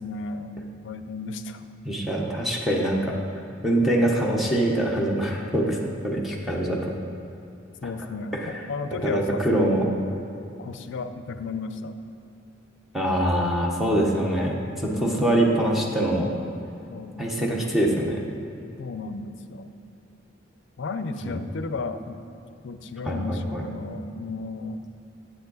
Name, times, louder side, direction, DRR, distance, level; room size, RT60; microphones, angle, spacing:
voice 1, 0.0-1.6 7.8-9.9 10.6-11.9 14.9-15.4 16.9-17.7 18.8-19.7 20.8-22.2 22.6-24.9, left 3 dB, 65° left, 10 dB, 0.5 m, -34 dB
voice 2, 1.8-3.1 3.6-5.8 6.0-6.8 8.4-8.5 8.9-9.8 12.9-16.3 17.2-18.2 21.2-21.4 23.0-23.6, right 1 dB, ahead, -2 dB, 0.9 m, -24 dB
9.4 x 7.9 x 3.9 m, 2.8 s
head